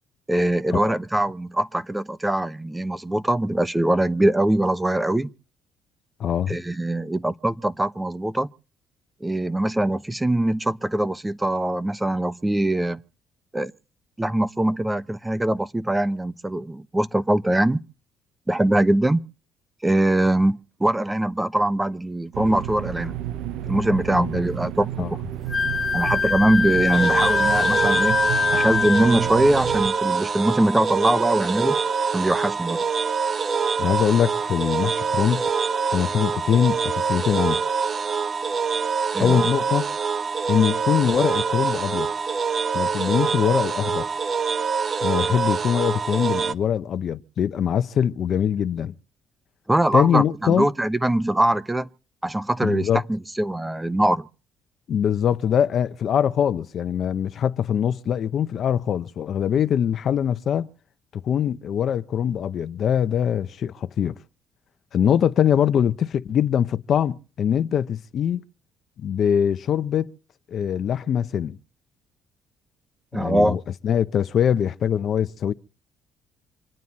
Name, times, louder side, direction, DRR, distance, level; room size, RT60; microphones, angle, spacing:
voice 1, 0.3-5.3 6.5-8.5 9.2-13.0 13.5-13.7 14.2-17.8 18.5-19.2 19.8-23.2 23.7-25.0 25.9-28.2 28.5-31.8 32.1-32.8 39.1-39.4 49.7-51.9 52.2-54.3 73.1-73.6, right 1 dB, 10° right, 0.9 m, -22 dB
voice 2, 6.2-6.6 24.1-24.3 25.0-25.1 33.8-35.4 35.9-37.6 39.2-39.9 40.5-42.1 42.7-44.1 45.0-48.9 49.9-50.7 52.6-53.0 54.9-60.7 61.1-64.2 64.9-68.4 69.0-70.1 70.5-71.6 73.1-75.5, left 9 dB, 60° left, 0.9 m, -23 dB
sound 1, 22.3-29.9, right 11 dB, 80° right, 0.8 m, -32 dB
Wind instrument woodwind instrument, 25.5-29.2, left 5 dB, 20° left, 0.9 m, -23 dB
sound 2, 26.9-46.5, right 5 dB, 40° right, 1.0 m, -25 dB
26.5 x 9.3 x 4.3 m
cardioid pair, 90°, 0 cm